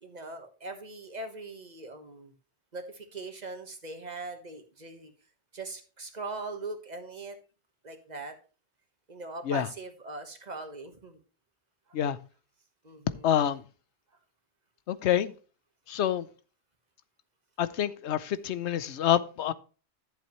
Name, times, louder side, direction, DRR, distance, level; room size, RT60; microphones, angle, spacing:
voice 1, 0.0-2.3 2.7-5.1 5.5-7.4 7.8-8.4 9.1-11.2 12.8-13.3, right 3 dB, 40° right, 1.4 m, -41 dB
voice 2, 13.2-13.6 14.9-15.3 15.9-16.3 17.6-19.5, left 10 dB, 85° left, 1.0 m, -27 dB
11.5 x 7.6 x 3.1 m
omnidirectional pair, 1.1 m